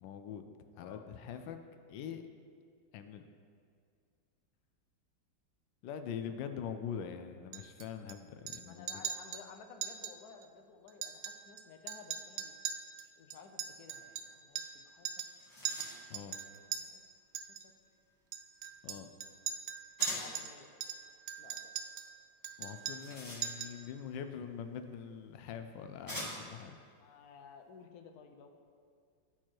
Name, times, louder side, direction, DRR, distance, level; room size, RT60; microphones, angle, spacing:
voice 1, 0.0-0.4 0.8-1.6 1.9-2.2 2.9-3.2 5.8-9.0 16.1-16.4 18.8-19.1 22.6-26.8, left 8 dB, 85° left, 8 dB, 1.3 m, -43 dB
voice 2, 0.7-1.0 8.6-12.5 13.2-15.2 16.7-17.0 17.5-17.7 20.0-20.7 21.4-21.7 27.0-28.5, left 6 dB, 65° left, 5 dB, 1.1 m, -55 dB
Chink clink, 7.5-8.1 8.5-8.6 8.9-9.4 9.8-10.1 10.4-10.5 10.9-11.6 11.9-14.8 15.0-15.4 15.6-16.8 17.3-17.6 18.3-20.5 20.8-22.1 22.4-23.1 23.4-23.8, right 8 dB, 80° right, 0.7 m, -40 dB
sound 1, 14.8-14.9 15.2-16.2 20.0-20.4 22.7-23.9 25.0-25.1 26.1-26.6, equal, 10° left, 1.8 m, -44 dB
12.5 x 4.4 x 4.6 m, 2.2 s
omnidirectional pair, 2.0 m